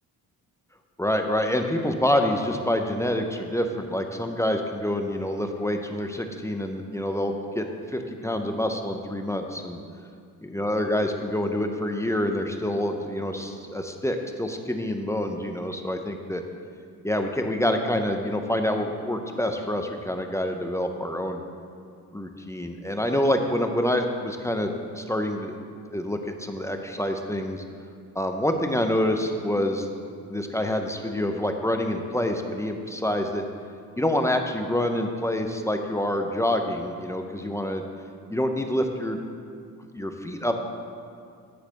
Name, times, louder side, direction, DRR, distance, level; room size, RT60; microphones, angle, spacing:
voice 1, 1.0-9.8 10.5-16.4 17.0-21.4 22.1-25.6 25.9-27.6 28.1-29.9 30.2-33.5 34.0-37.8 38.3-39.2 39.9-40.6, left 1 dB, 10° left, 4 dB, 0.7 m, -27 dB
10.5 x 4.1 x 6.5 m, 2.3 s
cardioid pair, 80°, 37 cm